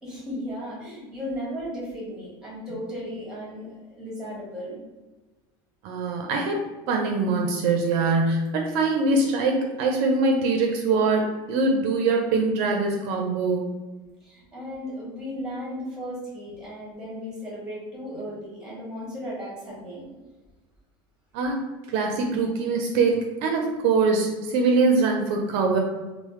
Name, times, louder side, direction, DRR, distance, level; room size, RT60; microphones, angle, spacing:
voice 1, 0.0-4.8 14.2-20.1, equal, 5° right, -5 dB, 1.1 m, -35 dB
voice 2, 5.8-13.7 21.3-21.6 21.9-25.8, right 3 dB, 60° right, 2 dB, 0.5 m, -23 dB
3.2 x 2.0 x 3.1 m, 1.1 s
supercardioid pair, 150°, 12 cm